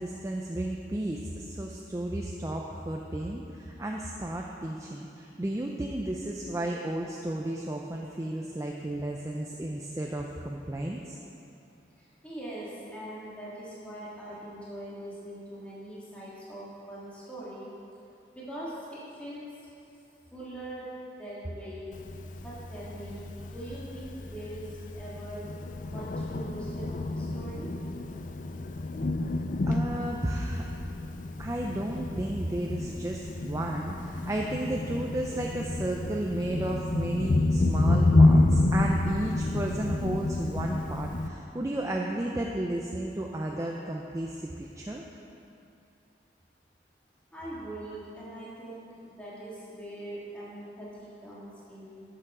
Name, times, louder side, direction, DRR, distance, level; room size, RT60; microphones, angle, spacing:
voice 1, 0.0-11.2 29.7-30.7 31.4-45.0, right 1 dB, 15° right, 0 dB, 0.5 m, -33 dB
voice 2, 12.0-17.7 18.3-19.5 20.3-20.9 21.2-22.0 22.4-25.5 25.8-27.7 47.3-52.0, right 1 dB, 5° left, -9 dB, 1.8 m, -42 dB
Thunder, 21.9-41.3, left 2 dB, 45° left, 0.4 m, -28 dB
11.5 x 6.9 x 4.9 m, 2.7 s
head